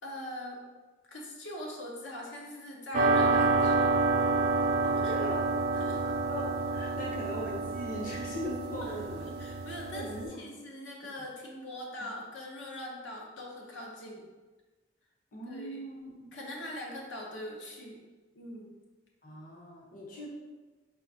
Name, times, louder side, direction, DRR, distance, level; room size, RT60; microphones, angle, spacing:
voice 1, 0.0-0.6 1.1-4.0 5.0-5.1 5.7-6.0 8.8-14.2 15.5-15.8 16.3-18.0 18.3-18.7, left 1 dB, 80° left, -1 dB, 0.8 m, -42 dB
sound 1, 2.9-10.3, right 3 dB, 50° right, 0.4 m, -28 dB
voice 2, 4.8-5.5 6.0-9.3 9.9-10.5 12.0-12.1 15.3-16.3 19.2-20.3, equal, 45° left, -3 dB, 0.7 m, -40 dB
4.4 x 3.6 x 2.7 m, 1.2 s
head